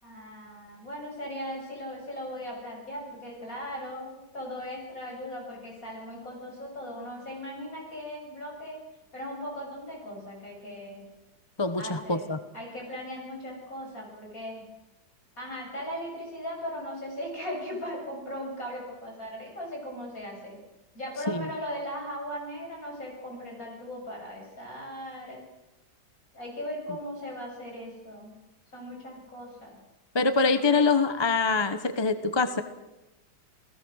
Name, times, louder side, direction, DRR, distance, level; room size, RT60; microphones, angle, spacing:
voice 1, 0.0-8.8 9.1-11.0 11.8-14.7 15.4-20.6 20.9-25.4 26.3-28.3 28.7-29.8, equal, 45° left, 0 dB, 7.9 m, -38 dB
voice 2, 11.6-12.4 21.3-21.5 30.1-32.6, left 4 dB, 20° left, 10 dB, 0.7 m, -24 dB
28.5 x 18.0 x 6.4 m, 1.0 s
omnidirectional pair, 2.1 m